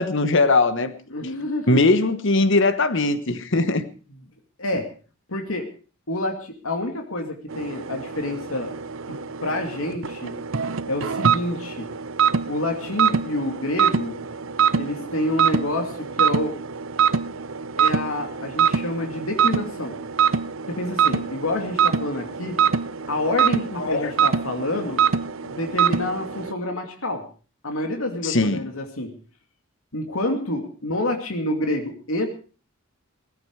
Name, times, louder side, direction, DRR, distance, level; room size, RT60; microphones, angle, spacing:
voice 1, 0.0-0.9 1.7-3.8 23.7-24.1 28.2-28.6, left 2 dB, 65° left, 11 dB, 1.3 m, -20 dB
voice 2, 1.1-1.8 4.6-4.9 5.3-5.7 6.1-8.7 9.1-10.4 10.9-11.9 12.5-14.2 14.7-16.6 17.8-20.0 20.7-22.6 23.1-25.0 25.4-27.2 27.6-29.2 29.9-32.3, left 1 dB, 85° left, 4 dB, 2.5 m, -28 dB
sound 1, 7.5-26.5, right 7 dB, 70° right, 0.7 m, -24 dB
17.5 x 15.0 x 4.8 m, 0.37 s
head